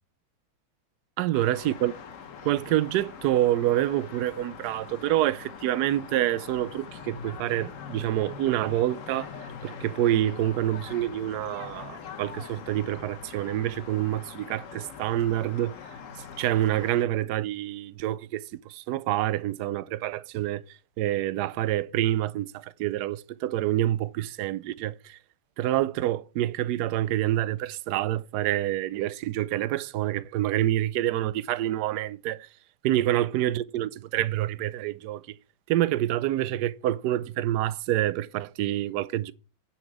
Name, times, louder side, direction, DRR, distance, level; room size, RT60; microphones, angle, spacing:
voice 1, 1.2-1.9 2.4-15.7 16.2-25.2 25.6-32.5 32.8-35.4 35.7-39.3, right 13 dB, 70° right, 0.9 m, -27 dB
sound 1, 1.3-17.0, left 6 dB, 55° left, 1.0 m, -43 dB
10.5 x 5.9 x 4.6 m
omnidirectional pair, 2.2 m